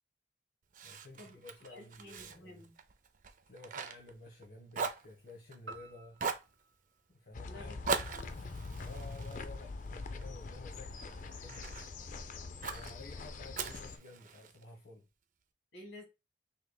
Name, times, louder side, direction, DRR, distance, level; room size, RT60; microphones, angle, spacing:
Fire, 0.7-4.5 4.7-5.8 6.2-6.5 7.9-10.3 10.8-11.9 12.6-12.9 13.5-14.6, right 5 dB, 45° right, 0.4 m, -40 dB
voice 1, 0.8-2.6 3.4-6.2 7.1-7.8 8.8-11.8 12.6-15.1, left 2 dB, 65° left, 1.3 m, -53 dB
voice 2, 1.7-2.8 7.4-8.3 15.7-16.0, left 1 dB, 85° left, 2.4 m, -52 dB
sound 1, 5.7-8.1, right 2 dB, 75° right, 0.8 m, -54 dB
sound 2, 7.3-14.0, left 3 dB, 45° left, 0.4 m, -44 dB
5.6 x 3.3 x 2.2 m
head